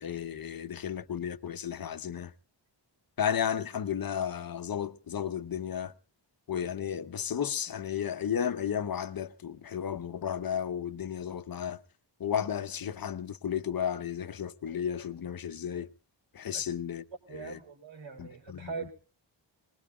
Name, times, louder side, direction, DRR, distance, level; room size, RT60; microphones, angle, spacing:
voice 1, 0.0-2.3 3.2-5.9 6.5-11.8 12.2-15.9 16.3-17.0 17.3-17.6 18.2-18.7, left 8 dB, 50° left, 0.8 m, -33 dB
voice 2, 17.3-18.9, right 5 dB, 80° right, 4.1 m, -41 dB
23.5 x 20.5 x 2.3 m
wide cardioid pair, 155°, 45 cm